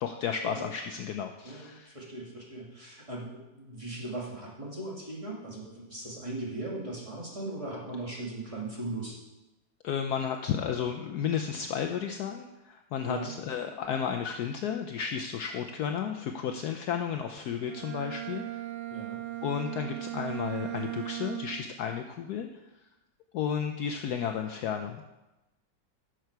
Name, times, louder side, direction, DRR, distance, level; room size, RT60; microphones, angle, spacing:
voice 1, 0.0-1.9 9.8-18.6 19.4-22.5 23.3-25.1, left 8 dB, 70° left, 5 dB, 1.0 m, -33 dB
voice 2, 1.4-9.2 13.1-13.3 18.9-19.2, right 2 dB, 20° right, -4 dB, 1.8 m, -38 dB
Bowed string instrument, 17.6-21.8, right 15 dB, 85° right, 1.6 m, -37 dB
11.0 x 6.2 x 4.6 m, 1.0 s
omnidirectional pair, 2.0 m